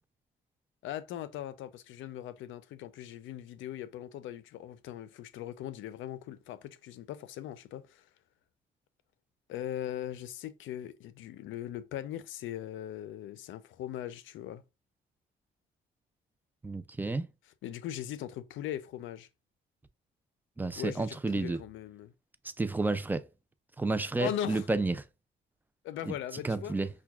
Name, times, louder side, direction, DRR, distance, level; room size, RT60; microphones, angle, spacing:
voice 1, 0.8-8.1 9.5-14.6 17.6-19.3 20.8-22.1 24.2-24.7 25.8-26.8, left 11 dB, 80° left, 0.5 m, -39 dB
voice 2, 16.6-17.3 20.6-21.6 22.6-23.3 23.8-25.0 26.1-26.2 26.4-26.9, right 3 dB, 10° right, 0.3 m, -30 dB
5.8 x 2.2 x 2.3 m
cardioid pair, 90°, 20 cm